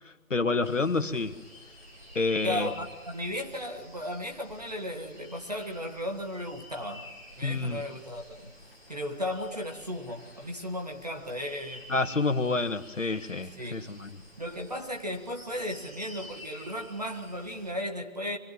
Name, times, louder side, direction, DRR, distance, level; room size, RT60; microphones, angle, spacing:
voice 1, 0.3-1.4 2.2-2.7 7.4-7.8 11.9-14.1, left 3 dB, 65° left, 9 dB, 1.9 m, -28 dB
sound 1, 0.6-17.7, left 1 dB, 15° right, 3.6 m, -50 dB
voice 2, 2.4-7.1 7.4-8.5 8.9-11.9 13.6-13.9 14.4-18.4, left 1 dB, 30° right, 3 dB, 1.5 m, -35 dB
25.0 x 20.0 x 7.7 m, 1.2 s
figure-of-eight pair, 175°, 41 cm